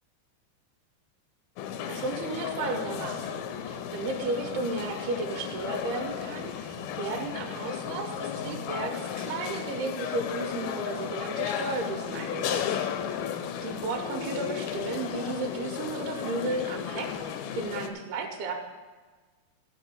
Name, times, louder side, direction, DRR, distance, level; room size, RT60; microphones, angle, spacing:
sound 1, 1.6-17.9, left 8 dB, 85° left, 2.5 m, -34 dB
voice 1, 1.9-12.6 13.6-17.3 17.6-18.6, right 3 dB, 90° right, 4 dB, 2.9 m, -34 dB
12.0 x 5.0 x 8.4 m, 1.3 s
omnidirectional pair, 4.5 m